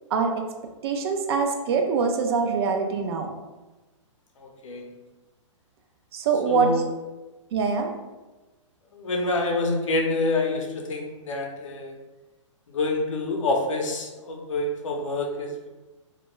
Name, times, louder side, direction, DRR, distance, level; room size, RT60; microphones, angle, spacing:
voice 1, 0.8-3.3 6.1-6.7 7.5-7.9, right 5 dB, 50° right, 4 dB, 0.4 m, -24 dB
voice 2, 4.4-4.9 6.5-6.8 8.9-11.9 12.7-15.7, left 2 dB, 75° left, 2 dB, 0.6 m, -27 dB
2.2 x 2.1 x 3.0 m, 1.1 s
hypercardioid pair, 130°, 17 cm